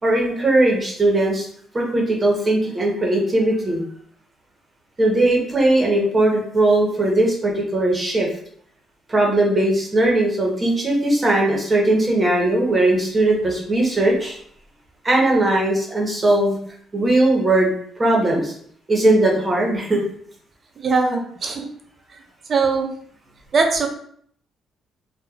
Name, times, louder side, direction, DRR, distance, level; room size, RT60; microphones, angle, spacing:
voice 1, 0.0-1.5 1.7-3.8 5.0-8.3 9.1-14.4 15.0-16.6 16.9-17.7 18.0-18.5 18.9-20.0, right 2 dB, 25° right, -2 dB, 0.8 m, -19 dB
voice 2, 20.8-21.7 22.5-22.9 23.5-23.9, right 4 dB, 50° right, 4 dB, 0.5 m, -20 dB
3.1 x 2.2 x 2.3 m, 0.62 s
cardioid pair, 90°, 0 cm